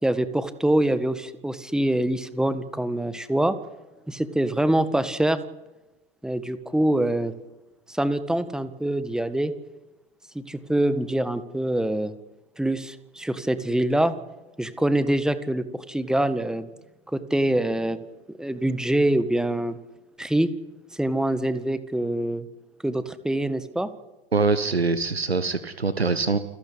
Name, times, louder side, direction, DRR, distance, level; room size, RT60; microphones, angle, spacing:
voice 1, 0.0-3.6 4.1-5.4 6.2-7.3 7.9-9.5 10.4-12.1 12.6-14.1 14.6-16.7 17.1-18.0 18.3-19.8 20.2-20.5 20.9-22.5 22.8-23.9, right 1 dB, ahead, 12 dB, 1.8 m, -24 dB
voice 2, 24.3-26.4, right 3 dB, 85° right, 12 dB, 1.3 m, -23 dB
29.0 x 15.5 x 9.8 m, 1.1 s
figure-of-eight pair, 80°, 30 cm